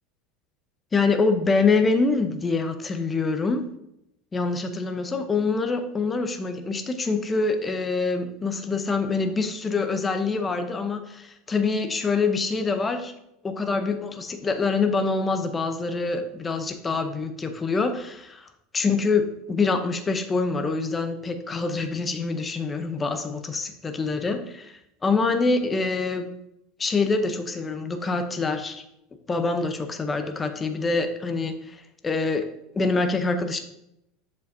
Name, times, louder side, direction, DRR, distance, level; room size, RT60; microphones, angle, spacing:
voice 1, 0.9-3.6 4.3-13.1 13.4-18.5 18.7-26.3 26.8-28.8 29.3-32.5 32.7-33.6, left 4 dB, 20° left, 7 dB, 0.7 m, -25 dB
6.8 x 5.2 x 2.7 m, 0.81 s
supercardioid pair, 115°, 0 cm